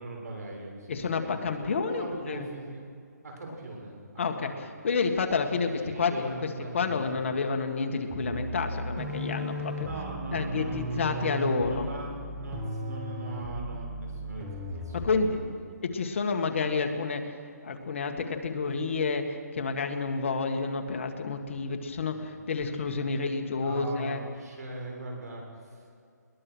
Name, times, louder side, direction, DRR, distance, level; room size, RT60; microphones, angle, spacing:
voice 1, 0.0-2.8 3.2-4.7 5.6-7.4 9.8-15.5 21.9-22.3 23.5-25.9, right 2 dB, 65° right, 0 dB, 6.7 m, -40 dB
voice 2, 0.9-2.5 4.2-4.5 4.8-5.7 6.0-6.1 6.4-6.5 6.7-9.9 10.3-11.9 14.9-15.6 15.8-17.3 17.6-24.2, left 4 dB, 45° left, 5 dB, 1.9 m, -29 dB
sound 1, 8.1-15.3, right 1 dB, 10° right, 1.8 m, -36 dB
21.5 x 20.5 x 6.4 m, 2.4 s
hypercardioid pair, 165°, 9 cm